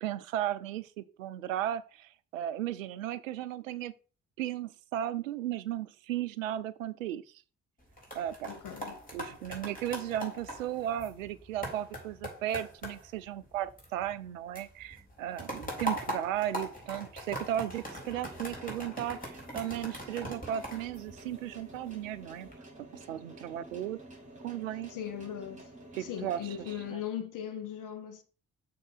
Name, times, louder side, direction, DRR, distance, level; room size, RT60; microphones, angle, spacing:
voice 1, 0.0-3.9 4.4-7.2 8.1-8.5 9.1-22.5 23.1-24.0 24.4-24.9 25.9-27.0, right 11 dB, 85° right, 0.5 m, -35 dB
sound 1, 7.8-14.3 14.6-21.7 22.2-22.6, equal, 20° left, 3.8 m, -41 dB
voice 2, 8.5-8.9 24.9-25.6 26.0-28.2, left 9 dB, 55° left, 1.0 m, -38 dB
sound 2, 17.9-26.9, right 1 dB, 20° right, 3.4 m, -50 dB
6.5 x 3.7 x 5.7 m
figure-of-eight pair, 45°, 38 cm